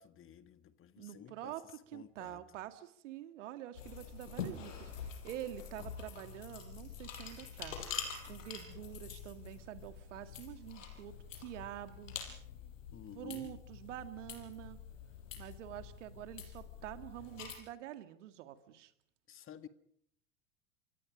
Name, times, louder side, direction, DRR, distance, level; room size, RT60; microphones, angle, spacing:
voice 1, 0.0-1.5 1.9-2.4 12.9-13.6 19.3-19.7, left 10 dB, 30° left, 1.7 m, -52 dB
voice 2, 1.0-1.6 1.9-7.8 8.3-12.1 13.2-14.8 15.4-18.9, right 13 dB, 65° right, 2.2 m, -47 dB
sound 1, 3.7-17.6, left 7 dB, 75° left, 5.5 m, -46 dB
28.0 x 24.5 x 5.2 m
figure-of-eight pair, 80°, 39 cm